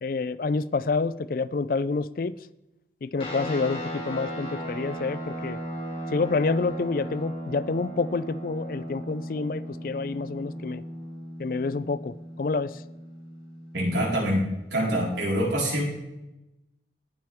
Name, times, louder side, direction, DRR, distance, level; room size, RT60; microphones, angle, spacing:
voice 1, 0.0-2.3 3.0-5.6 6.1-10.8 11.4-12.8, left 4 dB, 50° left, 18 dB, 0.4 m, -28 dB
sound 1, 3.2-14.9, equal, 30° left, 2.7 m, -37 dB
voice 2, 13.7-14.4 14.7-15.8, equal, 90° right, -3 dB, 4.5 m, -25 dB
18.0 x 7.5 x 3.6 m, 0.93 s
head